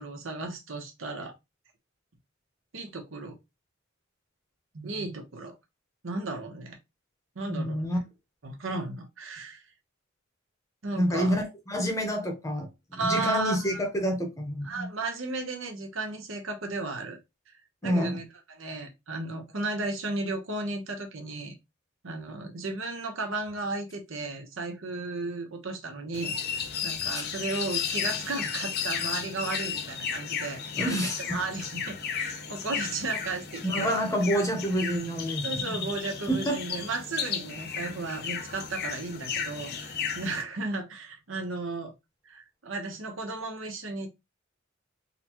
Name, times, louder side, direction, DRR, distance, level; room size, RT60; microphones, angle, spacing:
voice 1, 0.0-1.3 2.7-3.4 4.7-5.5 6.0-6.8 7.3-7.8 8.4-9.6 10.8-11.4 12.9-13.8 14.6-17.2 17.5-21.6 22.0-33.9 35.4-41.9 42.2-44.1, right 3 dB, 75° right, 0.9 m, -34 dB
voice 2, 7.5-8.0 11.0-14.9 17.8-18.2 30.8-31.2 33.6-35.8 36.3-36.6, equal, 15° left, 0.8 m, -28 dB
sound 1, 26.1-40.4, left 7 dB, 55° left, 0.5 m, -34 dB
3.9 x 2.2 x 2.9 m
head